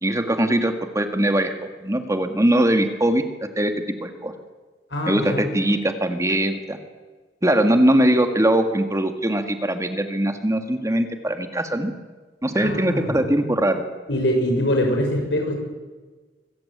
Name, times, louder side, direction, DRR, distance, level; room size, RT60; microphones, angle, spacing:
voice 1, 0.0-1.5 1.8-3.3 3.6-3.7 4.0-4.3 5.1-6.8 7.4-11.9 12.4-13.8, right 1 dB, 20° right, 7 dB, 1.8 m, -21 dB
voice 2, 4.9-5.5 12.6-13.2 14.1-15.5, equal, 85° left, 3 dB, 6.7 m, -23 dB
25.0 x 15.5 x 8.8 m, 1.3 s
head